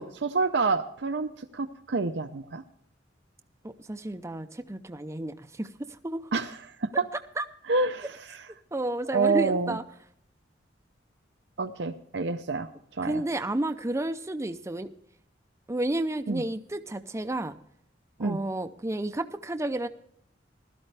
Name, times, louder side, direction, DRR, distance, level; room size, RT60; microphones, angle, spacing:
voice 1, 0.0-2.6 6.3-7.0 7.7-8.4 9.1-9.8 11.6-13.2 16.3-16.4 18.2-18.4, right 4 dB, 70° right, 7 dB, 0.6 m, -28 dB
voice 2, 3.6-5.7 6.0-6.3 7.4-7.5 8.7-9.8 13.0-14.9 15.7-17.5 18.2-19.9, right 1 dB, 15° right, 7 dB, 0.6 m, -31 dB
16.0 x 12.5 x 3.3 m, 0.66 s
head